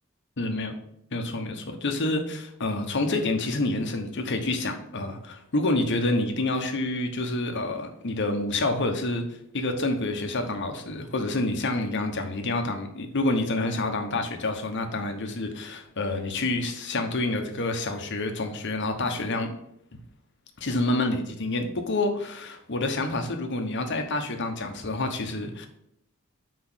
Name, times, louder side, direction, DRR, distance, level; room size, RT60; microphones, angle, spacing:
voice 1, 0.4-0.7 1.1-9.2 9.5-19.5 20.6-25.7, left 2 dB, 55° left, 5 dB, 1.1 m, -28 dB
6.2 x 4.6 x 6.2 m, 0.78 s
head